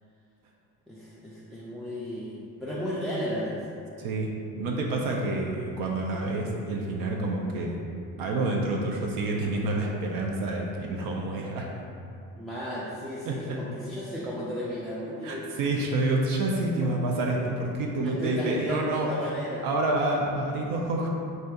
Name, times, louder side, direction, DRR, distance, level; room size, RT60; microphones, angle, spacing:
voice 1, 0.9-3.6 12.3-15.5 16.8-16.9 17.9-19.7, equal, ahead, -8 dB, 0.3 m, -34 dB
voice 2, 4.0-7.8 8.2-11.7 13.3-13.6 15.2-19.1 19.6-21.1, right 2 dB, 70° right, 0 dB, 0.5 m, -28 dB
3.2 x 2.7 x 2.3 m, 2.5 s
supercardioid pair, 80°, 36 cm